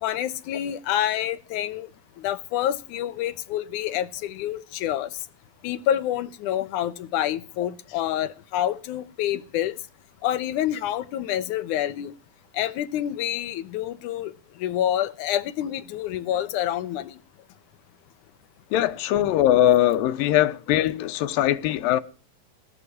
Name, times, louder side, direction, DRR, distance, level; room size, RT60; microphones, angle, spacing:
voice 1, 0.0-1.9 2.2-5.1 5.6-9.8 10.2-12.1 12.5-14.3 14.6-17.2, left 11 dB, 70° left, 2.1 m, -27 dB
voice 2, 18.7-22.0, left 12 dB, 90° left, 2.6 m, -21 dB
18.5 x 6.2 x 9.6 m
omnidirectional pair, 4.0 m